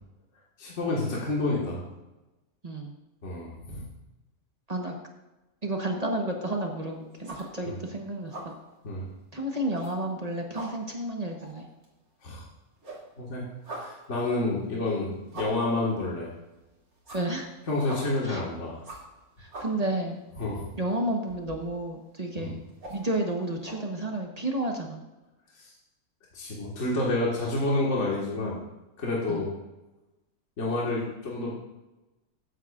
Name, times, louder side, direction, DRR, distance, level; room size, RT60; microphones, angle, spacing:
voice 1, 0.6-1.8 3.2-3.9 7.6-7.8 8.8-9.1 12.2-12.5 13.2-16.3 17.7-18.8 20.4-20.7 22.4-22.5 26.3-28.6 29.0-29.5 30.6-31.6, left 2 dB, 55° left, -5 dB, 2.1 m, -29 dB
voice 2, 2.6-3.0 4.7-4.9 5.6-8.5 9.3-11.6 17.1-17.5 18.2-18.4 19.4-20.2 20.8-22.6 22.9-25.0 29.3-29.5, right 1 dB, 30° right, 2 dB, 1.1 m, -31 dB
sound 1, 6.5-6.8 7.1-7.9 8.1-8.6 9.0-9.1 9.6-10.2 10.4-12.5 12.8-23.8, right 2 dB, 80° right, 3.3 m, -44 dB
14.0 x 9.5 x 2.5 m, 1.0 s
omnidirectional pair, 1.5 m